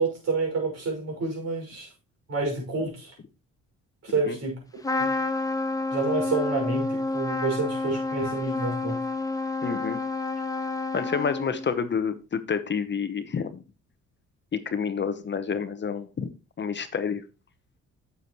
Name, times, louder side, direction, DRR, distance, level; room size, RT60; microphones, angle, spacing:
voice 1, 0.0-1.9 2.3-3.1 4.0-4.6 5.0-5.1 5.9-9.0, right 3 dB, 55° right, 5.8 m, -28 dB
Trumpet, 4.8-11.8, left 3 dB, 10° left, 1.1 m, -29 dB
voice 2, 9.6-10.0 10.9-13.6 14.5-16.3 16.6-17.2, left 6 dB, 35° left, 1.0 m, -29 dB
9.2 x 7.2 x 3.0 m
cardioid pair, 90°, 30 cm